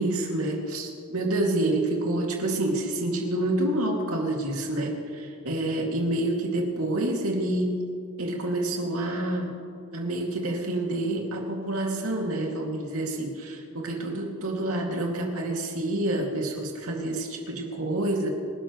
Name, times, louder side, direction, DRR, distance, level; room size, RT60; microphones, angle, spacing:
voice 1, 0.0-7.8 8.2-9.5 9.9-18.3, right 1 dB, 80° right, 0 dB, 2.6 m, -28 dB
25.5 x 12.0 x 3.2 m, 2.4 s
head